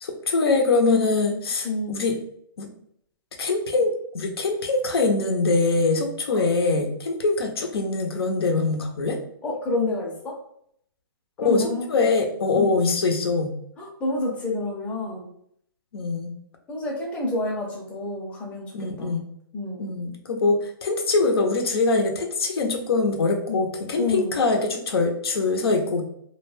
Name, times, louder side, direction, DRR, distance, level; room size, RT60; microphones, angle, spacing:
voice 1, 0.0-2.1 2.6-2.7 3.4-9.2 11.4-11.6 11.9-13.5 15.9-16.3 18.7-19.2 19.8-26.0, left 3 dB, 80° left, 4 dB, 0.6 m, -23 dB
voice 2, 1.6-2.0 6.3-6.4 9.4-10.4 11.4-11.8 12.5-12.7 13.8-15.3 16.7-18.7 19.0-19.2 19.5-19.9 23.5-23.7 24.0-24.4, left 2 dB, 10° left, -3 dB, 0.6 m, -29 dB
2.3 x 2.1 x 3.2 m, 0.69 s
hypercardioid pair, 150°, 12 cm